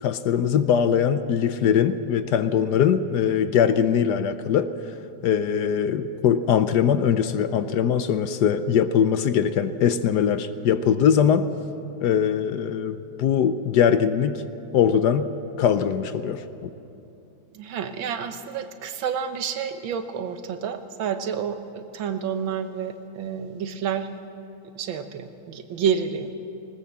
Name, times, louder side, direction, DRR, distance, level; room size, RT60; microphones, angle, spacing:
voice 1, 0.0-4.7 5.2-11.4 12.0-14.4 14.7-15.3 15.6-16.7, left 8 dB, 65° left, 11 dB, 1.2 m, -21 dB
voice 2, 17.5-24.1 24.8-26.3, right 7 dB, 85° right, 9 dB, 1.8 m, -29 dB
19.5 x 19.5 x 7.4 m, 2.9 s
omnidirectional pair, 2.1 m